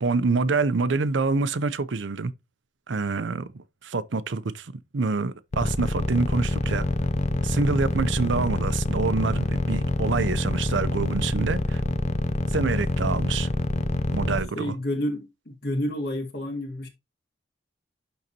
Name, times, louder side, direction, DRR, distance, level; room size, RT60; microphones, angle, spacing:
voice 1, 0.0-2.3 2.9-6.9 7.4-11.8 12.5-13.5 14.1-14.8, right 4 dB, 80° right, 0.6 m, -26 dB
sound 1, 5.5-14.4, left 2 dB, 35° left, 0.6 m, -25 dB
voice 2, 14.6-16.9, left 1 dB, 55° left, 2.0 m, -29 dB
11.5 x 4.0 x 2.9 m
head